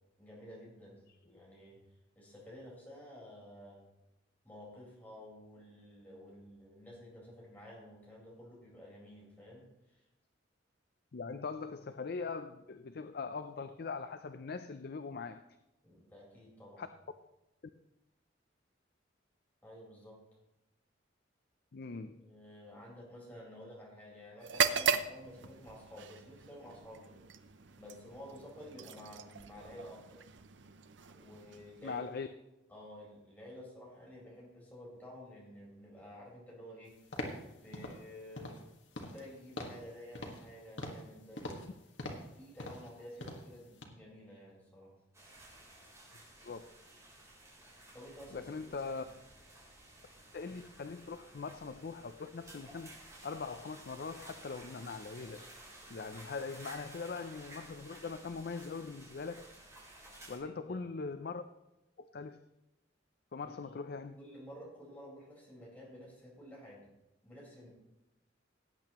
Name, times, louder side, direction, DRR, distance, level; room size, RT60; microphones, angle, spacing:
voice 1, 0.2-1.8 2.1-3.8 4.4-10.0 15.8-16.8 19.6-20.2 22.2-27.2 27.8-30.2 31.1-32.0 32.7-37.0 37.5-38.7 39.0-41.7 42.3-44.9 47.9-48.5 49.0-49.1 60.3-60.8 63.4-63.5 64.2-66.9 67.2-67.7, left 1 dB, 10° left, -5 dB, 4.6 m, -52 dB
voice 2, 11.1-15.4 16.8-16.9 21.7-22.3 31.8-32.3 46.4-46.7 48.3-49.0 50.3-55.5 55.9-59.7 60.3-61.4 62.0-62.4 63.3-64.2, left 4 dB, 55° left, 9 dB, 0.5 m, -41 dB
sound 1, 24.4-32.2, right 6 dB, 70° right, 0.6 m, -38 dB
sound 2, 37.1-37.4 37.7-38.0 38.4-38.6 38.9-39.3 39.6-39.8 40.1-40.5 40.8-41.1 41.4-41.7 42.0-42.3 42.6-42.9 43.2-43.5 43.8-43.9, left 1 dB, 70° left, 1.7 m, -42 dB
sound 3, 45.1-60.4, right 1 dB, 15° right, 3.7 m, -54 dB
18.0 x 8.6 x 3.0 m, 0.95 s
head